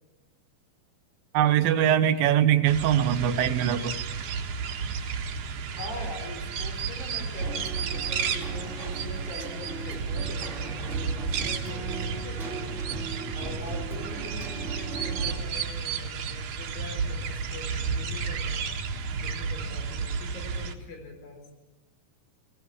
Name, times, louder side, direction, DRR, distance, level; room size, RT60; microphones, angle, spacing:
voice 1, 1.3-3.9, right 10 dB, 80° right, 10 dB, 2.6 m, -22 dB
sound 1, 2.6-20.7, right 5 dB, 60° right, 2.6 m, -32 dB
voice 2, 5.7-12.7 13.3-18.7 19.1-21.5, left 2 dB, 70° left, 3 dB, 5.6 m, -43 dB
Keyboard (musical), 7.4-15.4, right 4 dB, 25° right, 2.2 m, -39 dB
21.0 x 17.5 x 8.3 m, 1.1 s
omnidirectional pair, 4.3 m